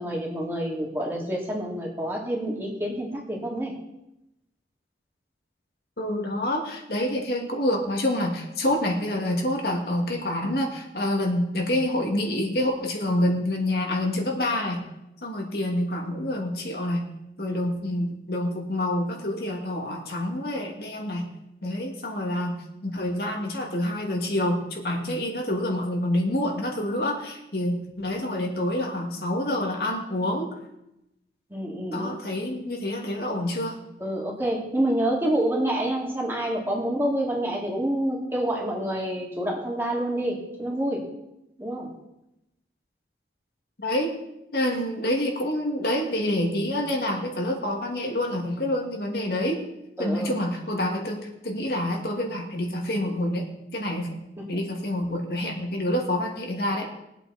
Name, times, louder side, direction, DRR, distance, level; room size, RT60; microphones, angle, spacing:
voice 1, 0.0-3.8 17.5-17.6 31.5-32.1 34.0-41.1 41.6-41.9 50.0-50.3 54.4-54.6, right 1 dB, 15° right, -3 dB, 2.9 m, -28 dB
voice 2, 6.0-14.8 15.2-17.1 17.4-21.2 21.6-22.5 22.8-30.5 31.9-33.8 43.8-44.1 44.5-49.6 50.0-54.2 54.5-56.9, left 1 dB, 60° left, 0 dB, 2.4 m, -27 dB
22.0 x 8.3 x 4.4 m, 0.88 s
head